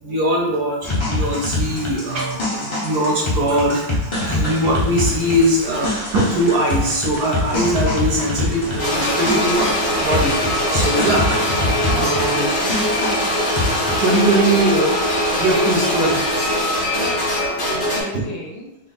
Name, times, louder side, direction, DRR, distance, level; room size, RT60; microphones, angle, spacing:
voice 1, 0.0-11.2 11.8-12.5 14.0-14.9 15.4-16.2 18.1-18.2, right 1 dB, 65° right, -2 dB, 1.1 m, -21 dB
sound 1, 0.8-14.1, left 2 dB, 30° left, 0.5 m, -25 dB
sound 2, 4.7-10.9, right 3 dB, 80° right, 1.4 m, -36 dB
sound 3, 8.8-18.0, equal, 60° left, 1.7 m, -21 dB
voice 2, 13.9-14.3 16.9-18.8, left 1 dB, 80° left, -3 dB, 1.8 m, -32 dB
4.3 x 2.0 x 4.0 m, 0.93 s
omnidirectional pair, 2.1 m